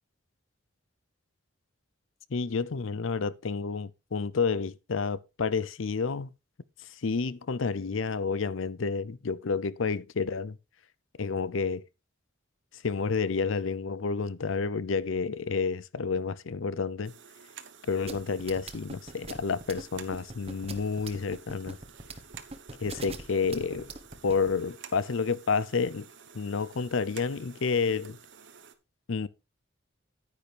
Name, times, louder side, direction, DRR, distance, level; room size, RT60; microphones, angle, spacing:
voice 1, 2.3-6.3 7.0-10.6 11.2-11.8 12.8-17.1 17.9-21.8 22.8-23.9 24.2-26.1 26.3-28.2 29.1-29.3, left 5 dB, 75° left, 0.6 m, -30 dB
sound 1, 17.0-28.7, right 7 dB, 65° right, 1.1 m, -51 dB
sound 2, 18.1-24.5, right 3 dB, 30° right, 1.1 m, -41 dB
9.8 x 9.3 x 3.4 m
head